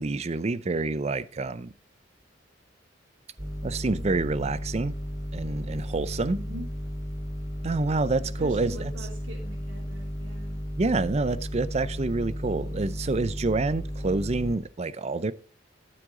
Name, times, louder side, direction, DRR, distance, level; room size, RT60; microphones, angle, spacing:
voice 1, 0.0-1.7 3.6-5.0 5.3-6.4 7.6-8.9 10.8-15.3, right 3 dB, 35° right, 0.5 m, -27 dB
sound 1, 3.4-14.5, equal, 20° right, 2.9 m, -34 dB
voice 2, 6.3-6.7 8.4-10.6, right 1 dB, 90° right, 2.8 m, -42 dB
13.0 x 7.8 x 3.7 m
head